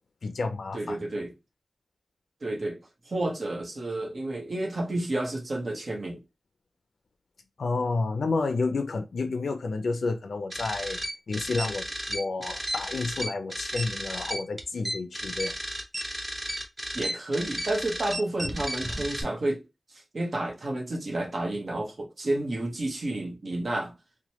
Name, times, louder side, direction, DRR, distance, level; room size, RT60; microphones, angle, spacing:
voice 1, 0.2-1.0 7.6-11.0 11.3-15.5, left 3 dB, 80° left, 0.3 m, -30 dB
voice 2, 0.7-1.3 2.4-2.8 3.0-6.2 16.9-19.6 19.9-23.9, right 1 dB, 55° right, 0.9 m, -30 dB
sound 1, 10.5-19.2, equal, 15° right, 0.7 m, -33 dB
3.0 x 2.1 x 2.9 m
wide cardioid pair, 95°, 0 cm